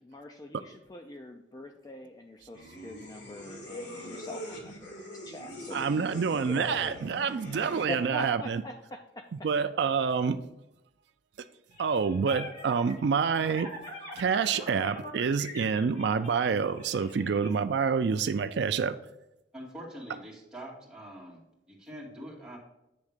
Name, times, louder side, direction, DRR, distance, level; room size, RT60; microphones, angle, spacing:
voice 1, 0.0-7.1 7.5-9.5, left 1 dB, 20° left, 4 dB, 0.4 m, -43 dB
sound 1, 2.5-8.0, equal, 80° left, 2.0 m, -43 dB
voice 2, 5.7-8.6 9.4-10.4 11.8-13.7 14.2-19.0, right 6 dB, 65° right, 11 dB, 0.4 m, -27 dB
sound 2, 11.7-17.5, left 1 dB, 40° left, 2.2 m, -44 dB
voice 3, 19.5-21.4 21.7-22.6, equal, 5° right, -6 dB, 2.2 m, -44 dB
8.6 x 3.5 x 6.5 m, 0.90 s
head